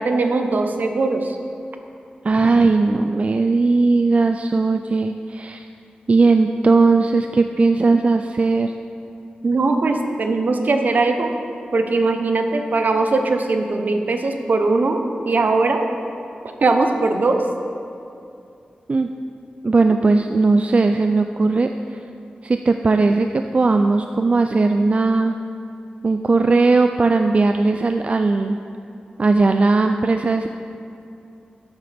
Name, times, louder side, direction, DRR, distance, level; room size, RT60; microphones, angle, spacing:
voice 1, 0.0-1.4 9.4-11.3 11.7-15.9 16.6-17.4, right 3 dB, 65° right, 5 dB, 0.8 m, -20 dB
voice 2, 2.2-5.6 6.1-8.7 18.9-19.1 19.6-22.0 22.4-25.3 26.0-28.6 29.2-30.5, right 3 dB, 40° right, 6 dB, 0.3 m, -18 dB
12.5 x 8.9 x 3.5 m, 2.6 s
wide cardioid pair, 90°, 3 cm